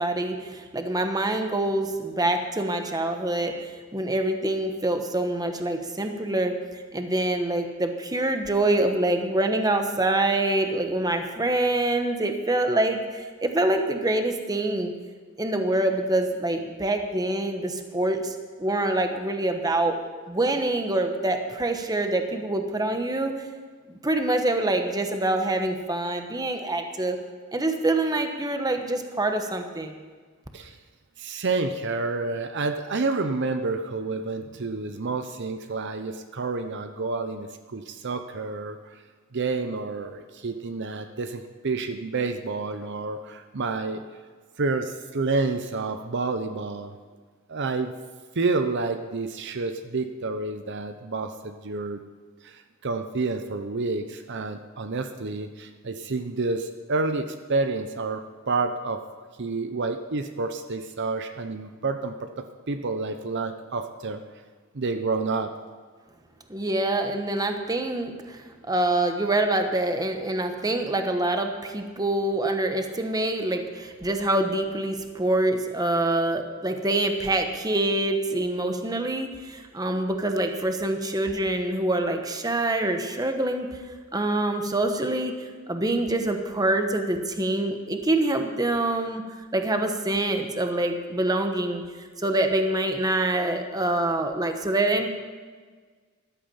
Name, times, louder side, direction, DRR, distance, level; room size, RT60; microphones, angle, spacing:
voice 1, 0.0-14.9 15.4-19.9 20.3-23.3 23.9-27.2 27.5-29.9 66.5-83.8 84.1-85.3 85.7-89.2 89.5-91.8 92.2-95.1, right 2 dB, 20° right, 5 dB, 1.2 m, -25 dB
voice 2, 31.2-38.8 39.3-44.0 44.6-46.9 47.5-47.9 48.4-52.0 52.4-59.0 59.4-62.3 62.7-64.2 64.7-65.5, right 3 dB, 55° right, 7 dB, 0.8 m, -29 dB
14.0 x 12.0 x 5.7 m, 1.5 s
head